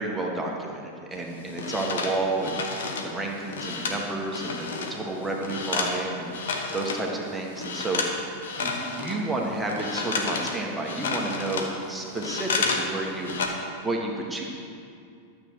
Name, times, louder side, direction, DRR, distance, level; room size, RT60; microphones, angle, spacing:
voice 1, 0.0-2.6 3.0-13.3 13.6-14.4, right 2 dB, 10° right, -1 dB, 1.5 m, -31 dB
sound 1, 1.1-5.0 5.2-7.1 7.5-8.2 8.4-12.9 13.1-13.5, left 4 dB, 60° left, 1.0 m, -31 dB
12.0 x 7.6 x 4.7 m, 2.5 s
figure-of-eight pair, 90°, 0 cm